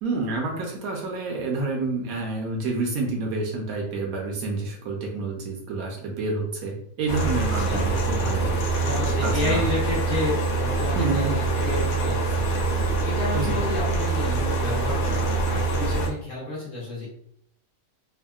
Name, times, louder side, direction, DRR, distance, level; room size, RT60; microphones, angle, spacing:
voice 1, 0.0-8.6 9.2-9.7 11.0-11.4 13.3-13.6, right 3 dB, 75° right, 0 dB, 1.0 m, -28 dB
sound 1, 7.1-16.1, right 3 dB, 75° left, 1.1 m, -24 dB
voice 2, 8.8-17.1, left 2 dB, 55° left, -7 dB, 1.5 m, -31 dB
3.4 x 2.1 x 2.3 m, 0.67 s
omnidirectional pair, 1.6 m